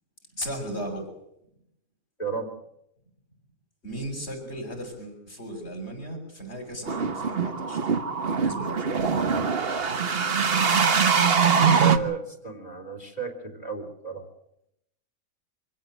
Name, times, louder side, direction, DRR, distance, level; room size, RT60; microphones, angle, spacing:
voice 1, 0.3-1.1 3.8-7.9 8.2-9.2, right 1 dB, 50° left, 2 dB, 7.4 m, -36 dB
sound 1, 6.9-12.0, right 6 dB, 45° right, 1.4 m, -23 dB
voice 2, 11.8-14.3, right 5 dB, 30° left, 5 dB, 3.7 m, -33 dB
26.0 x 16.0 x 8.1 m, 0.78 s
omnidirectional pair, 1.5 m